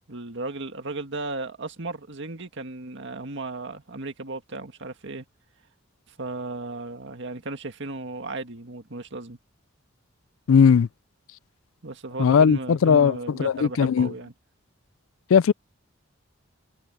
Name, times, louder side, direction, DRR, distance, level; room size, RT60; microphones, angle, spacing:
voice 1, 0.1-5.2 6.2-9.4 11.8-14.3, right 2 dB, 60° right, 2.0 m, -35 dB
voice 2, 10.5-10.9 12.2-14.1 15.3-15.5, left 6 dB, 80° left, 0.4 m, -18 dB
head